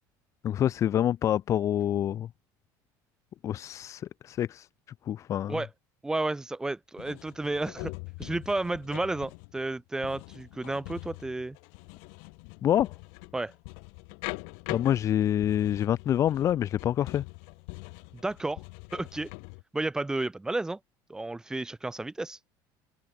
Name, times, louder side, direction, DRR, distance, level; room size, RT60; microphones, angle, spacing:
voice 1, 0.4-2.3 3.4-4.7 5.1-5.6 12.6-12.9 14.7-17.2, left 11 dB, 35° left, 1.8 m, -26 dB
voice 2, 6.0-7.9 8.2-11.6 13.3-13.5 18.1-18.6 18.9-19.3 19.7-20.8 21.1-22.4, right 2 dB, 5° right, 1.5 m, -32 dB
sound 1, 7.0-19.6, left 40 dB or more, 80° left, 3.8 m, -43 dB
cardioid pair, 165°, 9 cm